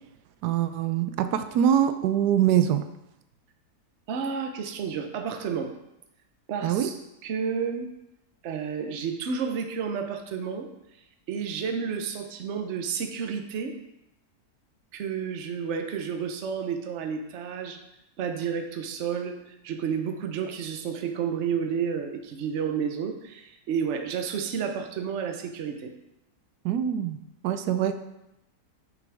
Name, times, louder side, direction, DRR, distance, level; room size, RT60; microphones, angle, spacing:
voice 1, 0.4-2.8 6.6-6.9 26.6-27.2 27.4-28.0, right 10 dB, 85° right, 9 dB, 1.2 m, -24 dB
voice 2, 4.1-5.7 6.5-7.9 8.4-10.7 11.3-13.8 14.9-17.8 18.2-25.9, right 6 dB, 55° right, 5 dB, 1.0 m, -31 dB
9.1 x 6.1 x 3.4 m, 0.88 s
omnidirectional pair, 1.7 m